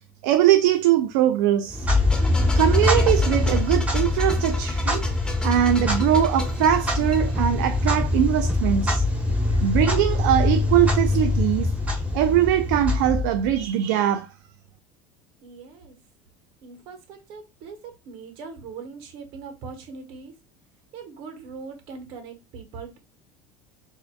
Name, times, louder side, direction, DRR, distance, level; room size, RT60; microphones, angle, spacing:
voice 1, 0.2-1.9 2.6-5.0 5.4-9.0 9.6-11.7 12.1-14.3, right 11 dB, 75° right, 0.4 m, -21 dB
Clock, 1.7-13.6, left 2 dB, 15° right, 1.3 m, -23 dB
sound 1, 2.1-7.8, left 2 dB, 10° left, 0.8 m, -37 dB
voice 2, 15.4-16.0 16.6-20.3 20.9-23.0, right 5 dB, 60° right, 1.2 m, -41 dB
4.2 x 2.7 x 2.2 m
supercardioid pair, 100°, 10 cm